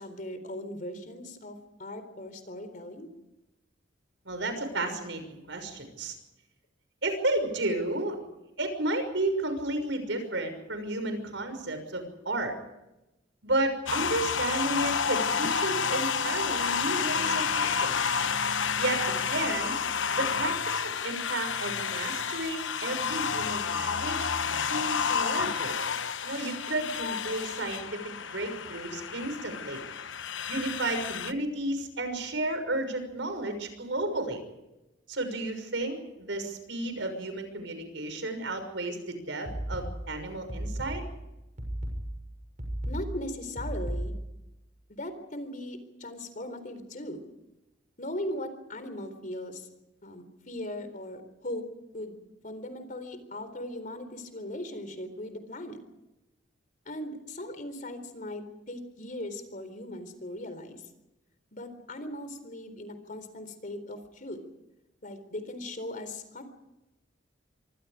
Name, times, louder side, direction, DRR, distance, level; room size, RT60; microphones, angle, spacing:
voice 1, 0.0-3.1 42.9-44.1 44.9-47.2 48.0-49.7 50.0-51.7 51.9-52.2 52.4-55.8 56.9-60.9 61.5-64.4 65.0-66.4, left 1 dB, 45° left, 10 dB, 3.9 m, -39 dB
voice 2, 4.2-6.2 7.0-8.2 8.6-12.5 13.4-17.9 18.8-19.8 20.1-20.6 20.8-24.3 24.6-25.8 26.2-28.0 28.3-29.8 30.5-34.4 35.1-41.0, right 2 dB, 75° right, 8 dB, 6.1 m, -32 dB
sound 1, 13.9-31.3, left 6 dB, 85° left, 1.0 m, -30 dB
sound 2, 39.5-44.4, right 1 dB, 40° right, 6.8 m, -35 dB
27.0 x 24.5 x 5.1 m, 0.95 s
head